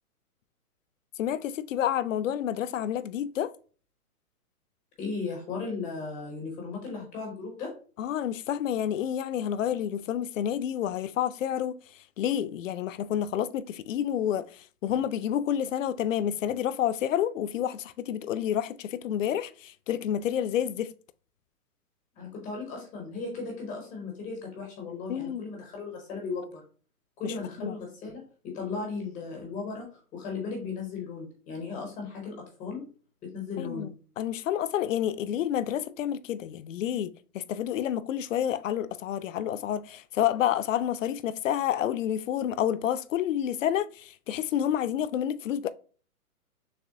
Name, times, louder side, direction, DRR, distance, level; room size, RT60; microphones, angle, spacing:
voice 1, 1.2-3.5 8.0-11.8 12.2-20.9 25.1-25.4 27.2-27.8 33.6-33.9 34.2-45.7, left 10 dB, 60° left, 0.5 m, -29 dB
voice 2, 5.0-7.7 22.1-26.7 27.2-32.8 33.2-33.9, left 4 dB, 5° left, 0.5 m, -36 dB
6.7 x 2.9 x 2.6 m
hypercardioid pair, 150°, 45 cm